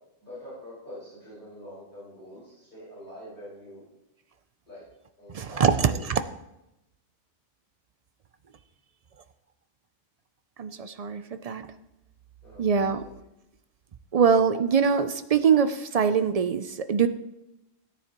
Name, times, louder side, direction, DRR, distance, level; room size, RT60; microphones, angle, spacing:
voice 1, 0.2-3.8 4.7-4.8 5.2-6.1 12.4-13.1, left 1 dB, 45° left, -11 dB, 5.1 m, -45 dB
voice 2, 5.3-6.2 10.6-11.6 12.6-13.0 14.1-17.1, right 6 dB, 55° right, 10 dB, 0.4 m, -23 dB
17.0 x 9.3 x 3.0 m, 0.91 s
omnidirectional pair, 1.1 m